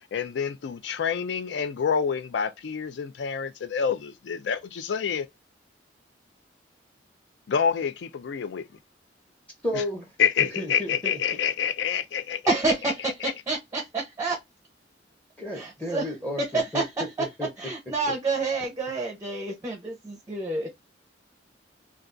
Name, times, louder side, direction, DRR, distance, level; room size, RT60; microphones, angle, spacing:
voice 1, 0.1-5.3 7.5-8.7 9.7-9.8 10.2-12.4 12.8-13.3, left 7 dB, 70° left, 0.4 m, -27 dB
voice 2, 9.6-10.1 10.4-11.2 15.4-16.8 17.2-17.5, left 1 dB, 10° left, 0.8 m, -32 dB
voice 3, 12.5-14.4 15.5-16.1 16.4-16.8 17.6-20.7, right 3 dB, 15° right, 0.5 m, -28 dB
2.3 x 2.3 x 3.7 m
head